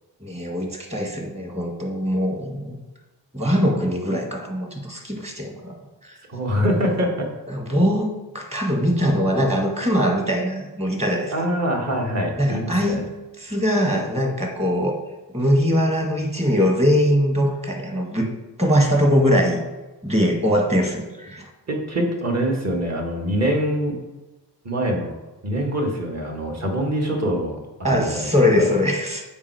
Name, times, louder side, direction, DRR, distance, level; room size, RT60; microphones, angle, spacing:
voice 1, 0.2-2.8 3.3-5.7 6.0-6.1 7.5-11.5 12.4-13.0 13.4-14.9 15.3-18.3 18.6-19.6 20.0-21.5 27.8-29.2, equal, 15° right, 3 dB, 1.7 m, -21 dB
voice 2, 6.3-7.3 11.3-13.0 21.7-24.0 24.6-25.1 25.4-27.6 27.9-28.3 28.6-28.7, equal, 40° right, 1 dB, 1.8 m, -24 dB
7.3 x 4.9 x 4.7 m, 1.1 s
cardioid pair, 80°, 42 cm